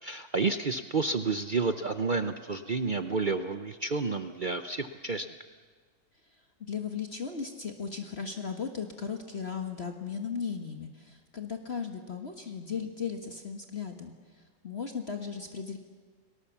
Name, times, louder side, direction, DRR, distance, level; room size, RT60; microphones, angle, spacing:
voice 1, 0.0-5.3, right 4 dB, 70° right, 9 dB, 0.4 m, -30 dB
voice 2, 6.6-14.1 14.6-15.8, left 6 dB, 40° left, 4 dB, 1.5 m, -36 dB
30.0 x 18.5 x 7.2 m, 1.5 s
omnidirectional pair, 1.9 m